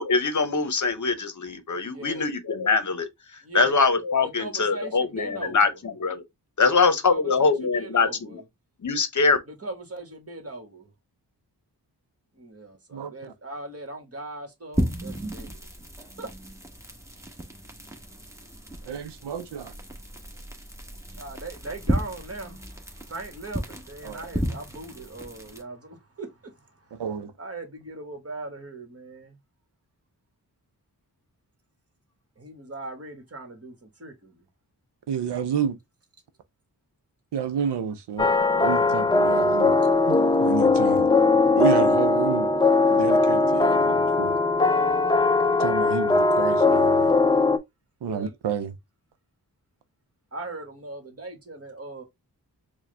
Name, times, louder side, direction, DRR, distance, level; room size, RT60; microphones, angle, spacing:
voice 1, 0.0-3.1 3.5-6.2 6.6-8.1 8.8-9.4, left 4 dB, 45° left, 0.9 m, -23 dB
voice 2, 1.8-2.3 3.4-3.8 4.2-5.8 6.6-8.4 9.5-10.9 12.3-15.7 16.2-16.3 21.2-27.0 27.4-29.4 32.4-34.5 48.0-48.3 50.3-52.0, right 2 dB, 35° right, 1.5 m, -39 dB
sound 1, 14.7-25.6, equal, 5° right, 1.2 m, -34 dB
voice 3, 18.8-19.7 24.0-24.3 26.9-27.3 35.1-35.8 37.3-38.3 38.6-39.8 40.1-41.1 41.6-42.5 42.9-44.4 45.6-47.1 48.0-48.7, right 7 dB, 80° right, 0.6 m, -30 dB
sound 2, 38.2-47.6, left 3 dB, 10° left, 0.5 m, -20 dB
4.7 x 2.3 x 3.3 m
cardioid pair, 55°, 40 cm